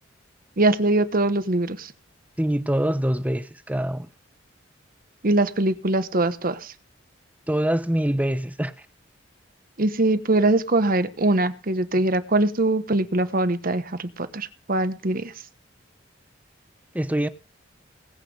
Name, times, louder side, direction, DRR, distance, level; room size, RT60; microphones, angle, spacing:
voice 1, 0.6-1.9 5.2-6.7 9.8-15.3, right 2 dB, 50° right, 1.2 m, -22 dB
voice 2, 2.4-4.1 7.5-8.7 16.9-17.3, right 1 dB, 10° right, 0.8 m, -24 dB
20.0 x 8.4 x 5.3 m
head